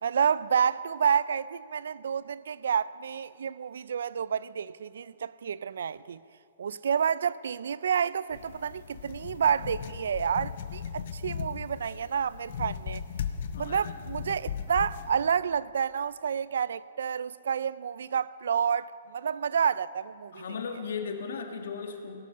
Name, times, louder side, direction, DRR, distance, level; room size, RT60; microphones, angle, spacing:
voice 1, 0.0-6.2 6.6-13.0 13.6-20.4, right 7 dB, 70° right, 0.3 m, -29 dB
sound 1, 8.3-15.3, left 8 dB, 45° left, 0.6 m, -37 dB
voice 2, 13.5-13.9 20.3-22.2, left 5 dB, 65° left, 1.4 m, -36 dB
18.0 x 10.5 x 5.4 m
hypercardioid pair, 175°, 0 cm